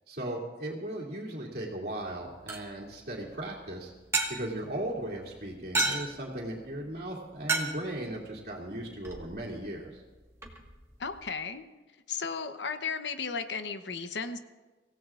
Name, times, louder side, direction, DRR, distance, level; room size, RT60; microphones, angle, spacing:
voice 1, 0.1-3.9 4.3-10.0, right 1 dB, 60° right, -4 dB, 2.6 m, -37 dB
sound 1, 2.0-11.3, right 2 dB, 15° right, 1.6 m, -37 dB
voice 2, 11.0-11.7 12.1-14.4, left 5 dB, 80° left, 9 dB, 0.9 m, -34 dB
25.0 x 16.5 x 2.5 m, 1.2 s
head